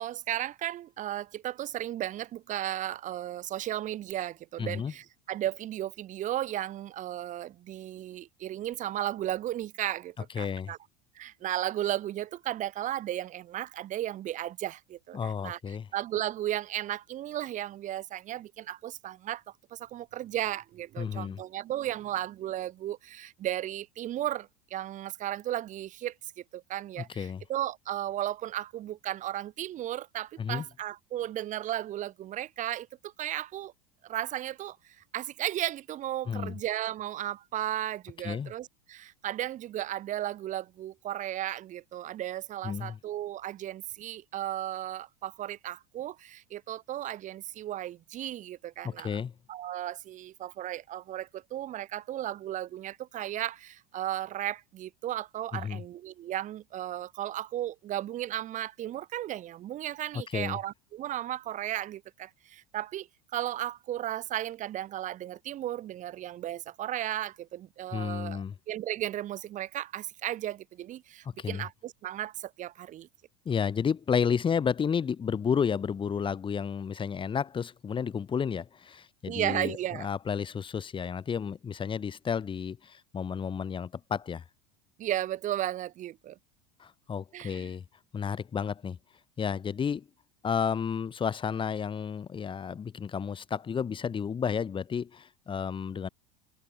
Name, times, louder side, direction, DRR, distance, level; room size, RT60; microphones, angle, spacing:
voice 1, 0.0-10.8 11.2-15.6 15.9-19.4 19.7-26.1 26.5-33.7 34.0-49.2 49.5-63.1 63.3-73.1 79.3-80.1 85.0-86.4 87.3-87.7, right 13 dB, 45° right, 1.8 m, -35 dB
voice 2, 4.6-4.9 10.3-10.7 15.1-15.9 21.0-21.4 27.0-27.4 30.4-30.6 36.3-36.5 38.2-38.5 42.6-43.0 48.8-49.3 55.5-55.8 60.1-60.6 67.9-68.5 71.4-71.6 73.5-84.4 86.8-87.8 88.1-89.0 89.4-90.1 90.4-96.1, left 7 dB, 25° left, 2.3 m, -31 dB
hypercardioid pair, 85°, 19 cm